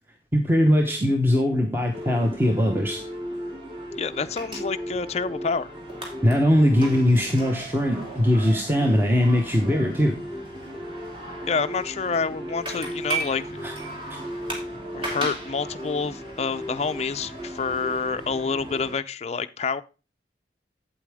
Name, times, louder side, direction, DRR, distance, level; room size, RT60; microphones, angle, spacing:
voice 1, 0.3-3.1 6.2-10.2 13.6-13.7 14.1-14.2, equal, 15° right, 1.0 m, -21 dB
sound 1, 1.9-18.9, right 1 dB, 30° right, 2.7 m, -35 dB
voice 2, 4.0-5.7 11.5-13.6 14.9-19.8, left 5 dB, 40° left, 0.4 m, -28 dB
8.4 x 8.3 x 3.5 m
head